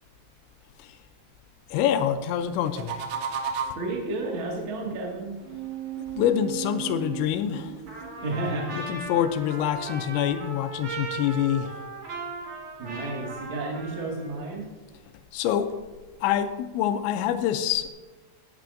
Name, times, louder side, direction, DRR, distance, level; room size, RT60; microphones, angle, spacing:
voice 1, 1.7-3.0 6.2-7.8 8.7-11.9 15.3-15.7 16.2-17.9, left 10 dB, 85° left, 8 dB, 2.6 m, -26 dB
sound 1, 2.5-4.0 5.4-8.2, right 7 dB, 90° right, 3.6 m, -34 dB
voice 2, 3.7-5.4 8.2-8.7 12.8-14.7, right 2 dB, 70° right, -2 dB, 1.1 m, -31 dB
Trumpet, 7.9-14.5, right 3 dB, 50° right, 3.2 m, -38 dB
17.5 x 8.3 x 2.6 m, 1.3 s
omnidirectional pair, 5.7 m